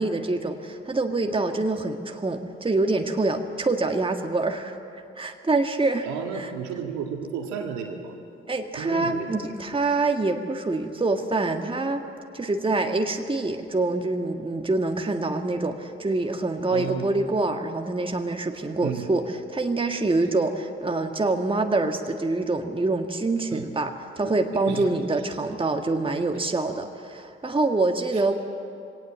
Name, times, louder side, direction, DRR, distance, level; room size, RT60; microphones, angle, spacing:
voice 1, 0.0-4.8 5.2-6.1 6.3-6.5 8.5-12.0 12.3-28.3, right 2 dB, 20° right, 5 dB, 1.7 m, -25 dB
voice 2, 6.0-8.1 8.8-9.4 16.7-17.1 18.8-19.1 23.5-23.6 24.2-24.3 24.7-24.9 28.1-28.2, right 7 dB, 70° right, 2 dB, 2.2 m, -33 dB
22.0 x 18.0 x 7.6 m, 2.6 s
hypercardioid pair, 40°, 29 cm